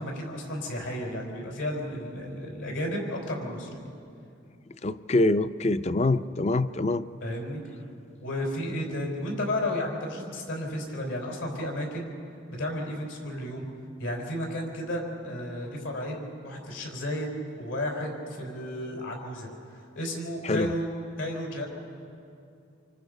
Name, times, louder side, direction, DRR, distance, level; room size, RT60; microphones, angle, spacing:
voice 1, 0.0-3.9 7.2-7.6 8.2-12.1 12.5-13.6 14.0-17.3 17.6-19.5 19.7-20.9 21.2-21.7, left 1 dB, 80° left, 1 dB, 4.8 m, -33 dB
voice 2, 4.8-7.0 20.4-20.7, left 2 dB, 35° left, 13 dB, 0.5 m, -25 dB
27.0 x 24.5 x 5.3 m, 2.5 s
head